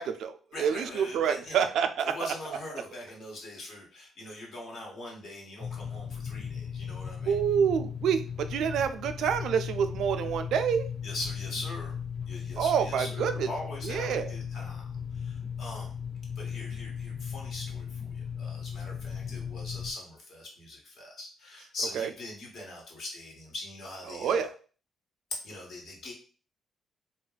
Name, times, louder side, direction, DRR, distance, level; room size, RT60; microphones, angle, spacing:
voice 1, 0.0-2.1 7.3-10.9 12.6-13.5 13.8-14.3 22.0-22.1 24.1-24.5, right 7 dB, 75° right, 9 dB, 0.3 m, -27 dB
voice 2, 0.5-1.7 2.0-7.3 11.0-11.9 12.3-14.9 15.1-15.9 16.4-24.5 25.3-26.1, left 2 dB, 65° left, -1 dB, 1.3 m, -41 dB
sound 1, 5.6-19.9, left 7 dB, 20° left, 0.4 m, -37 dB
2.5 x 2.1 x 3.8 m, 0.40 s
cardioid pair, 90°, 0 cm